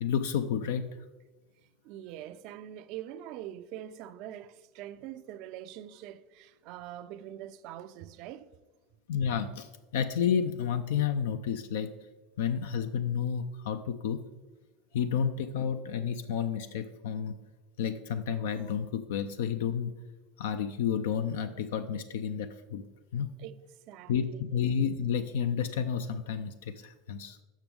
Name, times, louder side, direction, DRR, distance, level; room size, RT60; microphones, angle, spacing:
voice 1, 0.0-0.9 9.1-11.9 12.4-14.2 14.9-17.4 17.8-19.9 20.4-22.8 23.1-23.3 24.1-27.4, left 7 dB, 80° left, 0.4 m, -31 dB
voice 2, 1.8-8.5 23.4-23.5 23.9-24.7, right 12 dB, 60° right, 0.4 m, -44 dB
7.2 x 6.0 x 3.5 m
hypercardioid pair, 95°, 0 cm